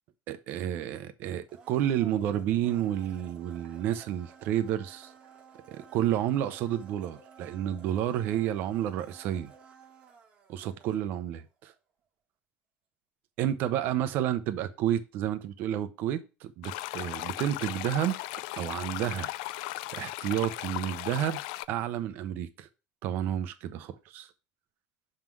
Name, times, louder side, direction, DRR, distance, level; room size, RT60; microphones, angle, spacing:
voice 1, 0.3-5.1 5.7-9.5 10.5-11.7 13.4-18.2 18.6-19.3 19.9-21.4 21.7-22.7 23.0-24.3, right 11 dB, 50° right, 0.7 m, -30 dB
Domestic sounds home sounds, 1.5-11.4 11.7-11.8, right 6 dB, 25° right, 1.2 m, -54 dB
sound 1, 16.6-21.7, left 18 dB, 85° left, 0.3 m, -37 dB
6.5 x 3.8 x 6.1 m
cardioid pair, 170°, 4 cm